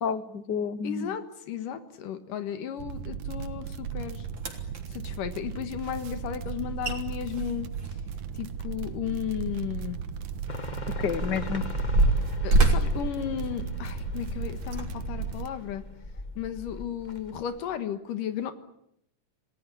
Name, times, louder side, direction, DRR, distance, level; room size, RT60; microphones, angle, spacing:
voice 1, 0.0-1.1 11.0-11.7, left 6 dB, 65° left, 13 dB, 1.1 m, -30 dB
voice 2, 0.8-4.3 4.9-7.7 8.3-10.0 12.4-15.8 16.4-18.5, left 9 dB, 85° left, 9 dB, 3.1 m, -34 dB
sound 1, 2.8-15.5, right 7 dB, 70° right, 2.7 m, -36 dB
sound 2, 3.9-4.0 4.4-4.8 6.5-6.6 6.8-7.0 7.3-9.1 9.4-9.6 10.3-14.0 14.6-14.8 15.5-15.6, right 2 dB, 35° right, 3.9 m, -26 dB
sound 3, 10.5-17.7, left 3 dB, 30° left, 0.8 m, -41 dB
28.5 x 18.5 x 9.9 m, 0.76 s
omnidirectional pair, 3.7 m